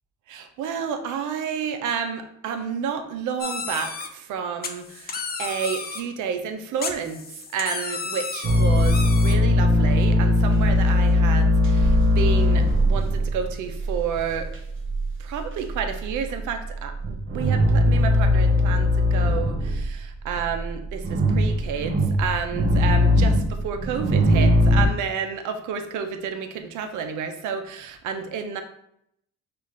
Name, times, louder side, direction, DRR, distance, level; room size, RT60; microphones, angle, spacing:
voice 1, 0.3-14.5 15.2-28.6, right 7 dB, 85° right, 7 dB, 0.6 m, -30 dB
sound 1, 3.4-4.1 4.6-6.0 6.8-9.3, left 5 dB, 30° left, 0.6 m, -32 dB
sound 2, 8.4-15.1 15.4-16.4 16.7-19.9 20.3-24.9, left 1 dB, 40° right, 0.9 m, -20 dB
5.4 x 2.5 x 3.1 m, 0.74 s
cardioid pair, 90°, 30 cm